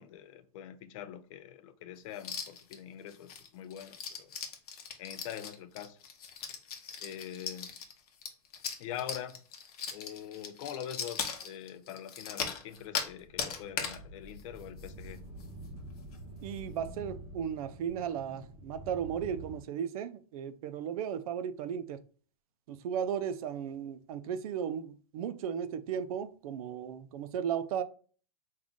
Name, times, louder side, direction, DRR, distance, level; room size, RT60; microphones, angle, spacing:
voice 1, 0.0-4.3 5.0-6.0 7.0-7.8 8.8-9.4 9.9-15.3, left 10 dB, 55° left, 0.4 m, -44 dB
sound 1, 2.2-2.7 3.1-13.1 13.4-14.0 14.4-14.5 14.8-15.1 15.4-15.5 16.0-16.2, left 6 dB, 75° left, 0.8 m, -39 dB
sound 2, 12.8-19.6, right 1 dB, 25° right, 0.7 m, -48 dB
voice 2, 16.4-22.0 22.7-27.8, right 8 dB, 65° right, 0.4 m, -35 dB
3.6 x 2.4 x 3.5 m
hypercardioid pair, 130°, 20 cm